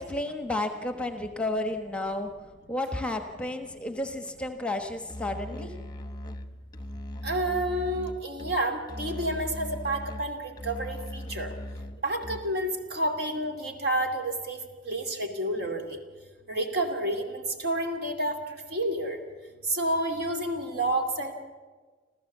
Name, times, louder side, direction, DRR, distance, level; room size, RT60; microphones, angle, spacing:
voice 1, 0.0-2.3 2.7-5.7, left 1 dB, 5° left, 6 dB, 1.2 m, -32 dB
Musical instrument, 5.1-12.7, left 1 dB, 20° left, 1.0 m, -39 dB
voice 2, 7.2-11.5 12.0-16.0 16.5-18.4 18.7-19.2 19.7-21.3, right 1 dB, 60° right, 4 dB, 2.7 m, -29 dB
27.0 x 14.5 x 7.3 m, 1.5 s
head